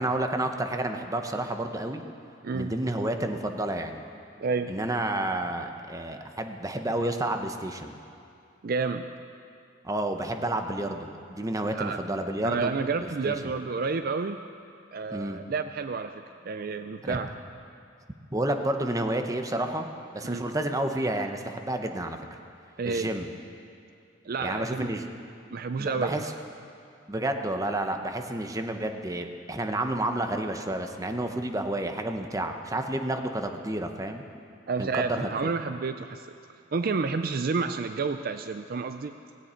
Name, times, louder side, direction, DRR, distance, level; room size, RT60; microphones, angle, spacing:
voice 1, 0.0-2.0 2.5-4.0 4.7-7.9 9.8-12.7 13.0-13.5 15.1-15.4 17.0-17.2 18.3-19.9 20.1-22.2 22.8-23.3 24.4-25.1 25.8-26.3 27.1-34.2 34.8-35.5, right 1 dB, 20° right, 6 dB, 0.9 m, -30 dB
voice 2, 4.4-4.7 8.6-9.1 11.7-12.0 12.4-14.4 14.9-17.3 20.2-20.5 22.8-23.1 24.2-24.9 25.5-26.3 34.7-36.3 36.7-39.1, right 4 dB, 50° right, 9 dB, 0.4 m, -30 dB
18.0 x 16.5 x 4.4 m, 2.4 s
head